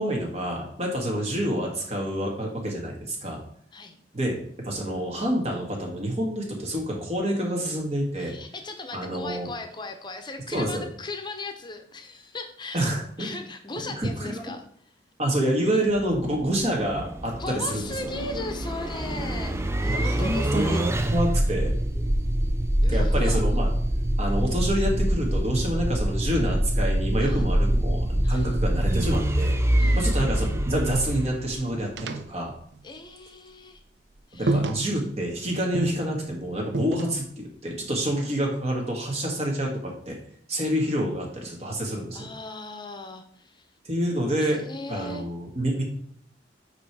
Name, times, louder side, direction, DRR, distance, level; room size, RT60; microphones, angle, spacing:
voice 1, 0.0-3.4 4.1-4.4 4.6-8.4 8.9-9.5 10.5-10.8 12.7-13.4 13.9-14.3 15.2-17.9 19.9-22.0 22.9-23.7 24.2-29.6 29.9-32.5 34.4-40.2 40.5-42.3 43.8-44.6 44.9-45.8, right 1 dB, 35° right, 0 dB, 1.7 m, -27 dB
voice 2, 8.2-14.6 17.4-20.9 22.8-23.4 27.2-27.5 28.2-28.6 29.8-30.2 32.8-33.8 34.3-34.6 42.1-43.8 44.4-45.3, left 2 dB, 25° left, 6 dB, 0.8 m, -38 dB
sound 1, 15.9-31.9, right 1 dB, 15° right, 0.4 m, -25 dB
sound 2, 17.8-21.0 21.3-24.2 25.6-27.6 28.0-33.3 33.6-33.7 34.1-34.2 34.5-35.4 35.7-37.5, right 3 dB, 75° right, 0.5 m, -36 dB
8.8 x 3.2 x 4.7 m, 0.63 s
head